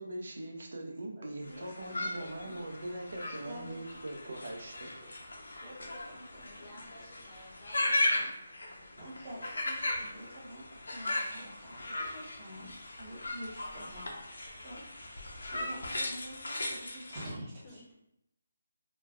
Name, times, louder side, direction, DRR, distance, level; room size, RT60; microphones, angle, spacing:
voice 1, 0.0-4.9, right 1 dB, 65° right, 2 dB, 0.6 m, -41 dB
voice 2, 1.2-1.6 1.9-2.6 3.4-3.8 5.0-5.1 5.6-8.3 8.9-14.1 14.6-14.8 15.1-17.8, equal, 20° right, -6 dB, 0.8 m, -48 dB
sound 1, 1.4-17.3, left 2 dB, 85° left, 0.6 m, -37 dB
voice 3, 6.4-9.0 17.6-17.9, left 1 dB, 25° left, -3 dB, 0.6 m, -56 dB
3.1 x 2.2 x 2.3 m, 0.81 s
hypercardioid pair, 170°, 0 cm